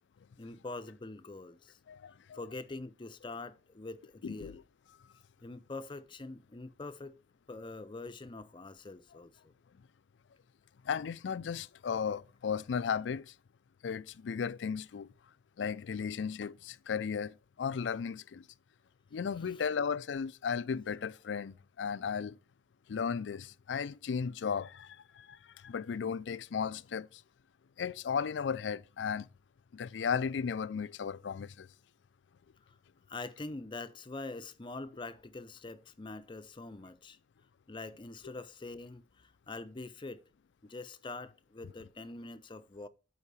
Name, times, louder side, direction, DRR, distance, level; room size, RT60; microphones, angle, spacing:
voice 1, 0.4-1.8 2.3-4.6 5.4-7.2 7.5-9.5 33.1-37.2 37.7-40.2 40.6-42.9, left 3 dB, 30° left, 0.6 m, -44 dB
voice 2, 1.9-2.4 4.2-4.6 10.9-13.3 13.8-15.1 15.6-18.4 19.1-22.4 22.9-25.4 25.6-27.2 27.8-29.3 29.7-31.7, left 6 dB, 90° left, 0.4 m, -35 dB
8.3 x 4.8 x 4.8 m
head